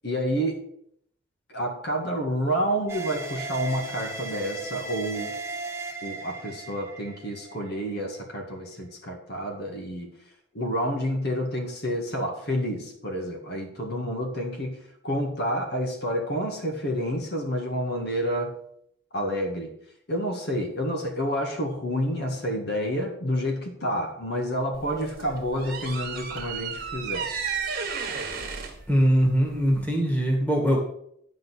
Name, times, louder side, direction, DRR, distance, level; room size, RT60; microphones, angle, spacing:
voice 1, 0.0-0.6 1.5-5.4 6.0-10.1 10.5-18.6 19.1-19.7 20.1-27.3, equal, 55° left, 2 dB, 1.8 m, -29 dB
sound 1, 2.9-8.2, right 2 dB, 15° right, 1.0 m, -37 dB
sound 2, 24.7-29.9, right 6 dB, 45° right, 1.9 m, -33 dB
voice 2, 28.9-30.8, equal, 10° left, -1 dB, 2.0 m, -22 dB
10.0 x 5.2 x 6.2 m, 0.70 s
head